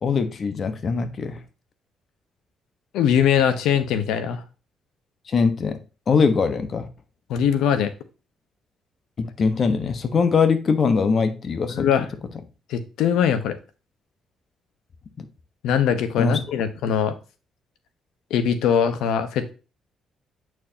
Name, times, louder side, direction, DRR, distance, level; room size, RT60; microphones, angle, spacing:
voice 1, 0.0-1.4 5.3-5.8 6.1-6.9 9.2-12.1 15.2-15.3 16.2-16.4, left 5 dB, 45° left, 1.1 m, -22 dB
voice 2, 2.9-4.4 7.3-7.9 11.7-12.0 12.7-13.6 15.6-17.1 18.3-19.5, left 8 dB, 90° left, 1.0 m, -21 dB
8.5 x 4.6 x 2.8 m
cardioid pair, 90°, 0 cm